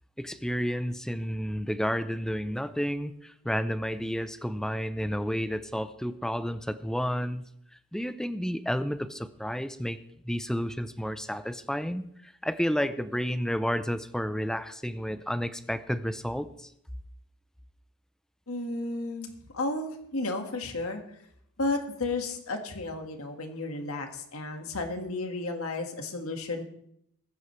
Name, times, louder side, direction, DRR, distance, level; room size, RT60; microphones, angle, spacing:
voice 1, 0.2-7.4 7.9-10.0 10.2-16.7, equal, 5° left, 11 dB, 0.6 m, -31 dB
voice 2, 18.5-21.0 21.6-26.6, left 2 dB, 80° left, 4 dB, 1.8 m, -33 dB
20.0 x 10.0 x 3.3 m, 0.71 s
head